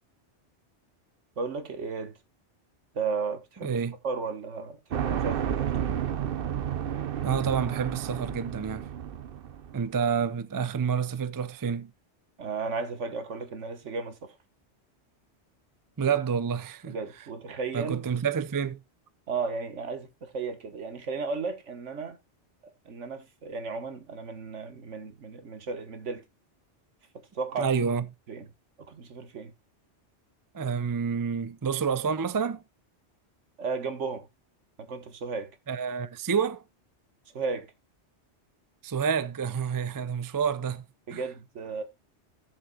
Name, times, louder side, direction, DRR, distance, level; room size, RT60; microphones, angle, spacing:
voice 1, 1.4-2.2 2.9-3.8 4.0-5.9 12.4-14.4 16.0-16.1 16.9-18.0 19.3-22.2 22.8-26.2 27.3-27.7 28.3-28.5 28.9-29.5 33.6-34.3 34.8-35.6 37.3-37.7 41.1-41.8, right 4 dB, 80° right, 1.6 m, -34 dB
voice 2, 3.6-3.9 7.2-8.9 9.7-11.9 16.0-17.0 17.7-18.8 27.6-28.1 30.5-32.6 35.7-36.6 38.8-40.8 41.1-41.2, right 6 dB, 30° right, 0.4 m, -28 dB
sound 1, 4.9-9.9, right 9 dB, 55° right, 0.8 m, -31 dB
17.0 x 6.9 x 2.3 m
omnidirectional pair, 1.2 m